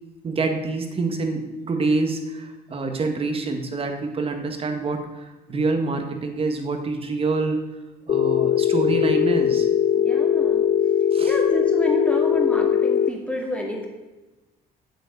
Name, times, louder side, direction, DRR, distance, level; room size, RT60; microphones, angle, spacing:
voice 1, 0.2-7.6 8.1-9.7 11.1-11.3, right 3 dB, 35° right, 5 dB, 1.8 m, -26 dB
Telephone, 8.1-13.1, left 9 dB, 40° left, 0.4 m, -20 dB
voice 2, 9.9-10.6 11.2-13.9, left 1 dB, 5° left, 0 dB, 2.3 m, -29 dB
8.2 x 8.0 x 6.7 m, 1.1 s
cardioid pair, 110°, 17 cm